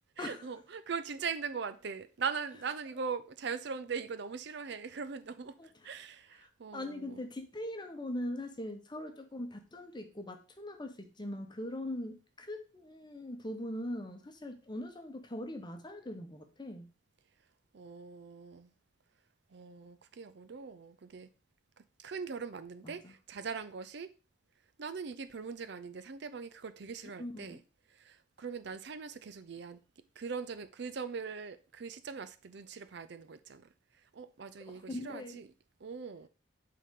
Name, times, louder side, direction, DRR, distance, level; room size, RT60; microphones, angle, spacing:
voice 1, 0.2-7.3 17.7-18.7 19.5-21.3 22.0-24.1 24.8-27.6 27.9-29.8 30.2-33.7 33.9-35.5 35.8-36.3, right 5 dB, 60° right, 0.5 m, -41 dB
voice 2, 6.7-16.9 22.8-23.1 27.2-27.6 34.6-35.4, left 1 dB, 25° left, 0.9 m, -41 dB
8.3 x 3.9 x 3.7 m
head